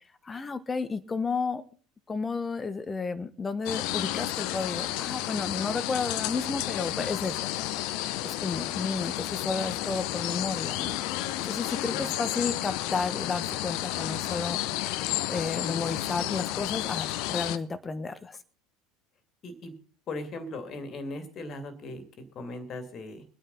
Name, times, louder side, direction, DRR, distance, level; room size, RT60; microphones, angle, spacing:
voice 1, 0.2-1.6 2.1-7.5 8.2-11.0 11.4-14.6 15.3-18.4, left 4 dB, 20° left, 14 dB, 1.1 m, -32 dB
sound 1, 3.7-17.6, left 14 dB, 55° left, 0.7 m, -31 dB
voice 2, 19.4-19.7 20.1-23.2, left 2 dB, 35° left, 9 dB, 2.5 m, -38 dB
23.0 x 9.1 x 4.0 m, 0.40 s
figure-of-eight pair, 70°, 0 cm